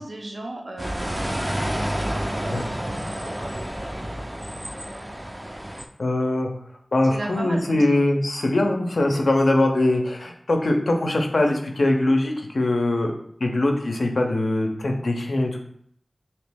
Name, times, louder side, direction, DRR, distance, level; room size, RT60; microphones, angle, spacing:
voice 1, 0.0-2.5 2.7-4.4 7.0-8.0 9.1-9.2, right 1 dB, 90° right, 0 dB, 0.6 m, -38 dB
sound 1, 0.8-5.9, equal, 15° right, 0.4 m, -29 dB
voice 2, 6.0-6.5 6.9-13.1 13.4-15.6, left 1 dB, 80° left, 2 dB, 0.5 m, -22 dB
3.0 x 2.8 x 3.4 m, 0.65 s
wide cardioid pair, 60°, 0 cm